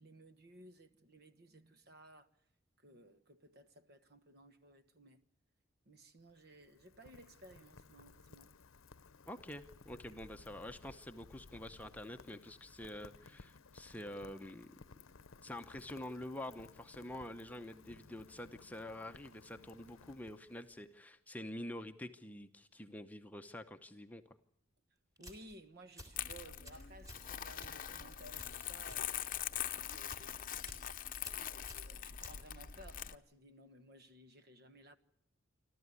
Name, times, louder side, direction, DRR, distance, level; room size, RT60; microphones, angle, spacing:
voice 1, 0.0-2.3 2.8-5.2 5.8-8.5 25.2-30.9 31.8-35.0, right 1 dB, 50° right, 1.4 m, -58 dB
Rain, 6.1-20.9, left 4 dB, 80° left, 0.8 m, -59 dB
voice 2, 9.3-14.7 15.4-24.2, left 1 dB, 10° left, 0.8 m, -47 dB
sound 1, 25.2-25.6 26.0-27.3 27.6-29.1 29.4-29.7 30.0-30.3 30.6-30.9 31.2-32.8, equal, 15° right, 3.6 m, -54 dB
Crumpling crinkling, 26.1-33.1, left 10 dB, 40° left, 0.8 m, -43 dB
28.0 x 13.0 x 9.7 m
head